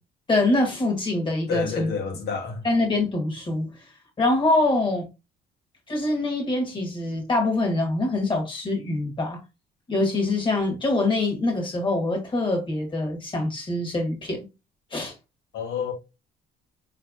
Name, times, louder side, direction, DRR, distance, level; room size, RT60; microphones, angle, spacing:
voice 1, 0.3-1.9 2.6-3.7 4.2-5.1 5.9-9.4 9.9-14.5 14.9-15.1, left 2 dB, 30° left, 2.0 m, -24 dB
voice 2, 1.5-2.6 15.5-15.9, left 6 dB, 75° left, 1.6 m, -29 dB
4.6 x 3.4 x 2.6 m
cardioid pair, 110°, 17 cm